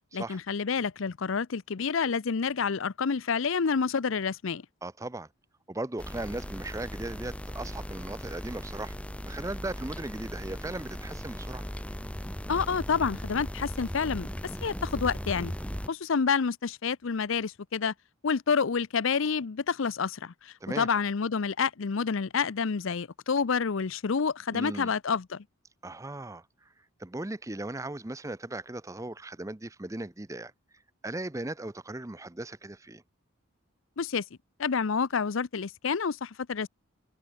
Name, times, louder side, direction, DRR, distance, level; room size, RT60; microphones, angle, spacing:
voice 1, 0.1-4.6 12.5-14.3 14.6-15.5 15.9-17.9 18.2-25.4 34.0-34.2 34.6-36.7, left 5 dB, 70° left, 0.6 m, -28 dB
voice 2, 4.8-5.3 5.7-8.9 9.2-11.7 20.6-20.9 24.5-24.9 25.8-26.4 27.0-30.5 31.0-33.0, right 2 dB, 15° right, 0.6 m, -37 dB
sound 1, 6.0-15.9, equal, 5° left, 1.7 m, -38 dB
open air
head